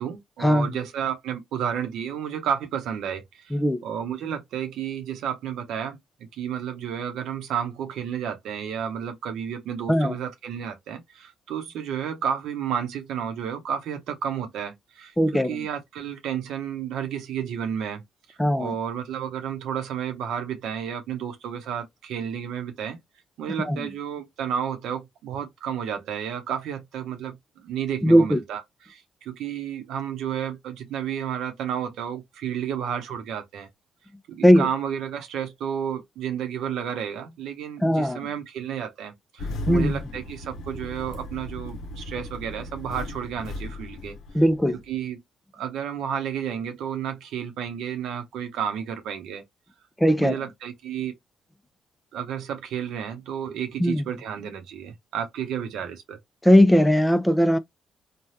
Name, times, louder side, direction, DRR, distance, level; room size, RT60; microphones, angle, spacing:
voice 1, 0.0-6.0 6.3-15.1 15.5-18.0 18.3-23.0 23.4-33.7 34.3-44.2 44.9-45.2 45.5-49.4 50.2-51.1 52.1-56.2, right 8 dB, 80° right, 0.8 m, -31 dB
voice 2, 3.5-3.8 9.9-10.2 15.2-15.6 18.4-18.7 23.6-23.9 28.0-28.4 34.4-34.7 37.8-38.3 39.7-39.9 44.3-44.8 50.0-50.4 53.8-54.0 56.4-57.6, equal, 5° left, 0.5 m, -19 dB
Engine starting, 39.4-44.9, left 2 dB, 75° left, 0.7 m, -36 dB
3.3 x 2.3 x 2.7 m
supercardioid pair, 70°, 0 cm